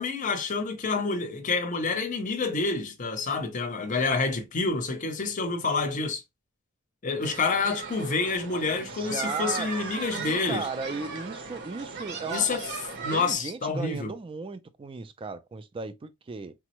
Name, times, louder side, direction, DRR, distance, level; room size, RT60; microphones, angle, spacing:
voice 1, 0.0-6.2 7.0-10.7 12.3-12.6 13.0-14.1, left 4 dB, 35° left, 0.6 m, -28 dB
sound 1, 7.2-13.3, right 4 dB, 55° right, 0.7 m, -37 dB
voice 2, 8.8-12.6 13.1-16.5, right 4 dB, 25° right, 0.3 m, -36 dB
3.4 x 2.0 x 2.9 m
head